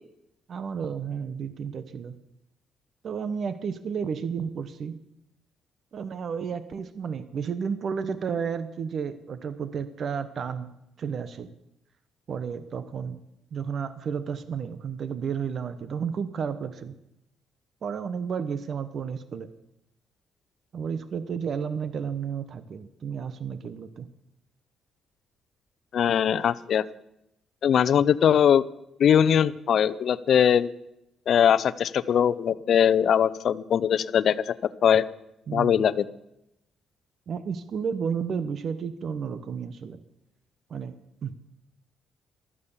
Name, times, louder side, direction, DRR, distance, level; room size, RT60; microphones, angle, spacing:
voice 1, 0.5-2.2 3.0-5.0 5.9-10.7 11.0-11.5 12.3-13.2 13.5-17.0 17.8-19.5 20.7-24.1 35.5-35.8 37.3-40.0 40.7-40.9 41.2-41.3, right 6 dB, 55° right, 12 dB, 1.1 m, -32 dB
voice 2, 25.9-26.8 27.6-28.6 29.0-30.7 31.3-34.6 34.8-35.0 35.5-36.1, left 8 dB, 60° left, 16 dB, 0.7 m, -21 dB
15.0 x 12.5 x 7.3 m, 0.86 s
cardioid pair, 90°, 0 cm